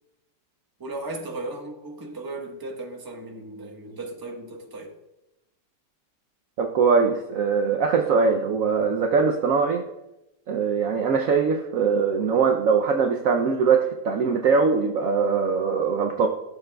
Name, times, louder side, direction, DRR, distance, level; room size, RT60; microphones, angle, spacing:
voice 1, 0.8-4.9, right 2 dB, 15° right, 1 dB, 0.9 m, -36 dB
voice 2, 6.6-9.8 10.5-16.3, right 5 dB, 65° right, 3 dB, 0.9 m, -22 dB
15.5 x 7.2 x 2.3 m, 0.95 s
omnidirectional pair, 1.9 m